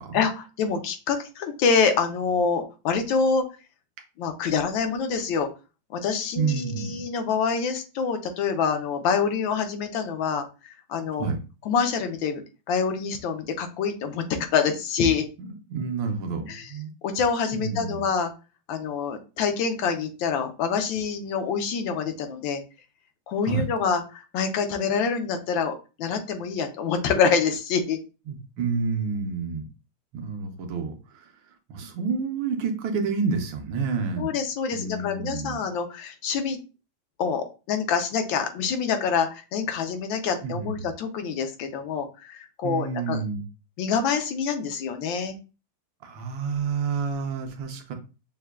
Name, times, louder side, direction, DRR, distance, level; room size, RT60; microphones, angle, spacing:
voice 1, 0.1-3.5 4.2-5.5 5.9-11.3 11.7-12.4 12.7-14.2 14.5-15.2 16.5-16.7 17.0-18.3 18.7-22.6 23.3-28.0 34.2-36.6 37.2-43.2 43.8-45.4, left 6 dB, 80° left, 6 dB, 1.4 m, -26 dB
voice 2, 6.4-7.0 11.2-11.4 15.4-16.9 17.5-18.1 23.4-23.7 28.3-29.7 30.1-31.3 31.7-34.3 34.7-35.6 40.4-40.9 42.6-43.4 46.0-47.9, right 5 dB, 75° right, 4 dB, 1.5 m, -29 dB
6.5 x 2.2 x 2.2 m, 0.32 s
omnidirectional pair, 2.1 m